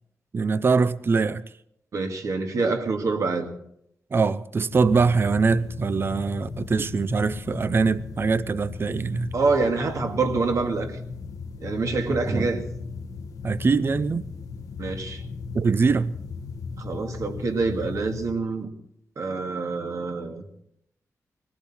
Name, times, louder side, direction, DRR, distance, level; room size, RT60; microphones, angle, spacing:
voice 1, 0.3-1.4 4.1-9.3 12.3-12.5 13.4-14.2 15.5-16.1, right 4 dB, 40° right, 0.6 m, -23 dB
voice 2, 1.9-3.5 9.3-11.0 11.6-12.6 14.8-15.2 16.8-18.7 19.2-20.4, right 3 dB, 65° right, 2.2 m, -26 dB
sound 1, 4.7-18.4, left 4 dB, 90° left, 1.3 m, -36 dB
20.5 x 15.5 x 4.3 m
wide cardioid pair, 120°, 6 cm